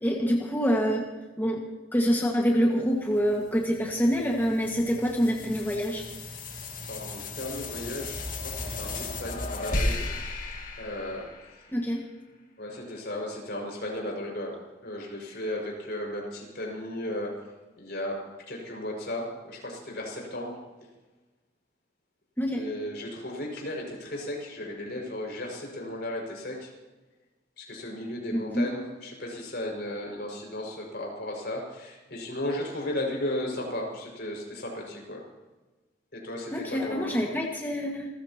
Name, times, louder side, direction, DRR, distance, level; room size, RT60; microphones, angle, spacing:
voice 1, 0.0-1.1 1.4-1.6 1.9-6.1 11.7-12.0 22.4-22.6 28.3-28.7 36.5-38.1, equal, 10° left, -1 dB, 1.7 m, -26 dB
sound 1, 3.3-11.9, left 2 dB, 50° left, 2.2 m, -35 dB
voice 2, 6.9-10.1 10.8-11.3 12.6-14.6 14.8-17.3 17.8-18.2 18.5-20.6 22.5-26.7 27.6-35.2 36.1-37.3, left 1 dB, 65° left, -1 dB, 5.9 m, -35 dB
29.0 x 14.5 x 3.0 m, 1.2 s
head